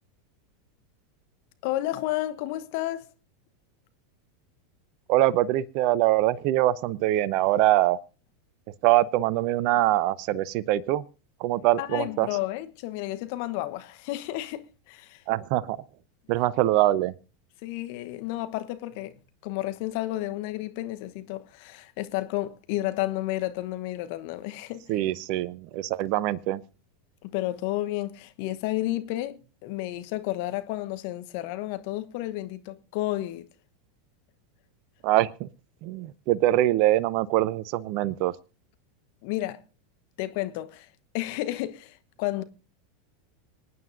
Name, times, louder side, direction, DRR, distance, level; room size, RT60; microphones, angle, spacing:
voice 1, 1.6-3.1 11.8-15.2 17.6-19.1 19.4-24.9 27.2-33.5 39.2-39.6 40.2-40.9 41.1-42.4, left 16 dB, 55° left, 1.0 m, -31 dB
voice 2, 5.1-8.0 8.8-11.0 11.4-12.3 15.3-15.8 16.3-17.1 24.9-26.6 35.0-35.5 35.8-38.3, right 15 dB, 50° right, 0.6 m, -23 dB
26.0 x 9.4 x 2.6 m
figure-of-eight pair, 90°, 0 cm